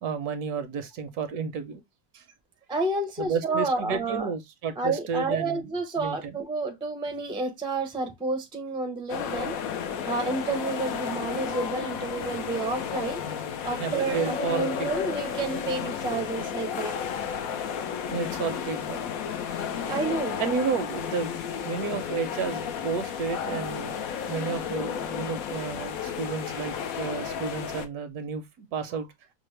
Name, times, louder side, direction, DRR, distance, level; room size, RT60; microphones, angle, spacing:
voice 1, 0.0-1.8 2.1-2.2 3.2-5.7 6.0-6.3 13.8-14.9 18.1-19.0 20.4-21.3 21.6-23.9 24.3-29.1, right 5 dB, 75° right, 1.2 m, -31 dB
voice 2, 2.7-4.3 4.8-9.5 10.1-13.2 13.6-16.9 19.9-20.4, right 3 dB, 5° right, 0.4 m, -30 dB
sound 1, 9.1-27.9, left 7 dB, 70° left, 1.0 m, -32 dB
6.0 x 2.1 x 3.1 m
omnidirectional pair, 1.6 m